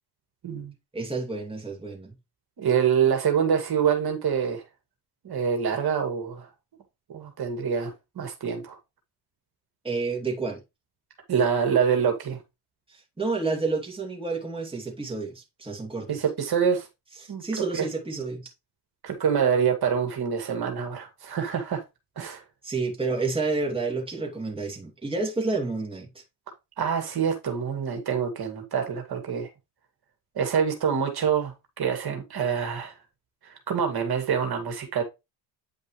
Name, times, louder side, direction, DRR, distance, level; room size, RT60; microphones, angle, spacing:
voice 1, 0.9-2.2 9.8-10.6 12.9-16.2 17.2-18.5 22.6-26.2, right 3 dB, 10° right, 2.6 m, -30 dB
voice 2, 2.6-4.6 5.2-6.5 7.1-8.8 11.3-12.4 16.1-16.9 17.3-17.4 17.7-17.8 19.0-21.8 22.2-22.4 26.8-29.5 30.4-32.9 33.4-35.0, right 7 dB, 50° right, 2.3 m, -26 dB
9.4 x 5.2 x 3.2 m
cardioid pair, 95°, 48 cm